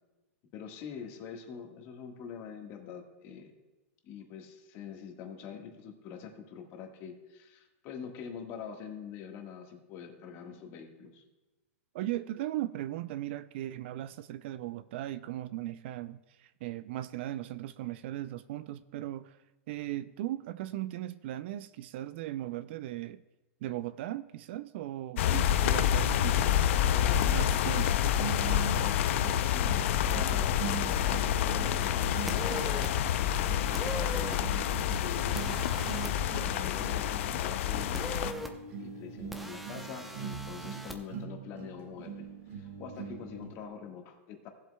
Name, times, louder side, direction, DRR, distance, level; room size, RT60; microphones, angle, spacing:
voice 1, 0.5-3.5 4.0-11.2 29.5-32.9 33.2-35.7 36.2-38.3 38.7-42.3 42.5-44.5, left 7 dB, 35° left, 1.4 m, -44 dB
voice 2, 11.9-19.4 19.7-23.2 23.6-26.5 26.9-28.0, right 14 dB, 50° right, 0.4 m, -38 dB
sound 1, 25.2-38.3, left 10 dB, 60° left, 0.5 m, -28 dB
sound 2, 28.2-43.6, right 6 dB, 65° right, 2.2 m, -42 dB
sound 3, 32.3-32.9 33.7-34.4 35.4-36.1 37.9-38.5 39.3-41.0, equal, ahead, 0.6 m, -40 dB
17.5 x 7.9 x 2.2 m
supercardioid pair, 155°, 8 cm